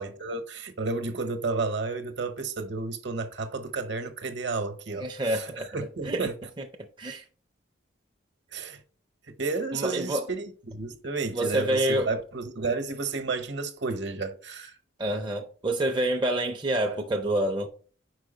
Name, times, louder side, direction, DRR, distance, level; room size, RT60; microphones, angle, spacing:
voice 1, 0.0-6.3 8.5-8.8 9.4-14.8, right 3 dB, 60° right, 0.9 m, -32 dB
voice 2, 4.9-5.7 6.1-6.3 6.6-6.7 7.0-7.2 9.7-10.2 11.3-12.1 15.0-17.7, right 1 dB, 25° right, 0.5 m, -27 dB
4.8 x 4.7 x 4.9 m
head